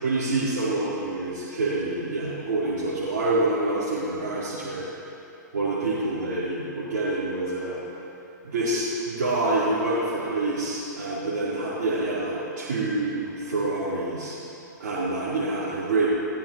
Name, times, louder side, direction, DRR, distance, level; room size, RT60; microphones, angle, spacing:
voice 1, 0.0-4.8 5.5-7.8 8.4-14.4 14.8-16.1, right 2 dB, 65° right, -10 dB, 4.1 m, -27 dB
19.5 x 18.0 x 3.1 m, 2.8 s
hypercardioid pair, 120°, 10 cm